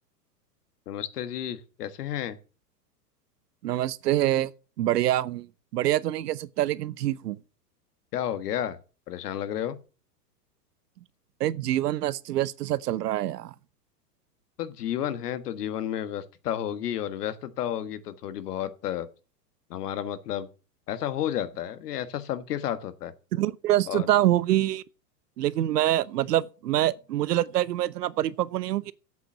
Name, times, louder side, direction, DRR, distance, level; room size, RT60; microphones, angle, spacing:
voice 1, 0.9-2.4 8.1-8.8 9.1-9.8 14.6-19.1 19.7-20.5 20.9-23.1 23.9-24.1, left 11 dB, 70° left, 1.6 m, -31 dB
voice 2, 3.6-4.5 4.8-5.5 5.7-7.4 11.4-13.5 23.3-24.8 25.4-28.9, right 13 dB, 75° right, 0.8 m, -25 dB
8.1 x 7.5 x 7.3 m
hypercardioid pair, 115°, 48 cm